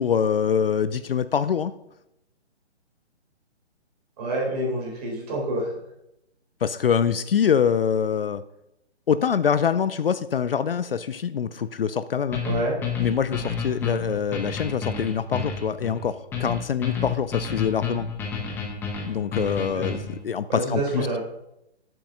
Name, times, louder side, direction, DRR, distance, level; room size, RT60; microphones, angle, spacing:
voice 1, 0.0-1.7 6.6-8.4 9.1-12.4 13.0-18.1 19.1-21.1, left 7 dB, 55° left, 14 dB, 0.5 m, -24 dB
voice 2, 4.2-5.7 12.4-12.8 19.7-19.8 20.5-21.2, right 1 dB, 35° right, -3 dB, 4.3 m, -27 dB
sound 1, 12.3-20.2, left 5 dB, 5° left, 0.8 m, -30 dB
7.8 x 7.5 x 6.4 m, 0.83 s
figure-of-eight pair, 145°, 34 cm